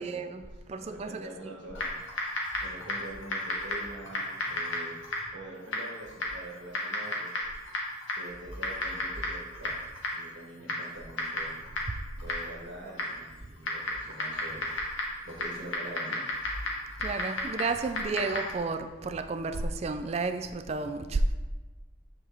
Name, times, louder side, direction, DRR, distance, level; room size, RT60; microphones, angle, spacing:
voice 1, 0.0-1.3 17.0-21.3, right 3 dB, 35° right, 9 dB, 0.3 m, -32 dB
voice 2, 0.8-1.9 2.6-7.3 8.2-11.9 12.2-14.7 15.2-16.2, right 1 dB, 70° right, -2 dB, 1.3 m, -44 dB
Typing, 1.7-18.6, left 1 dB, 90° left, 1.3 m, -35 dB
7.6 x 4.6 x 3.4 m, 1.3 s
head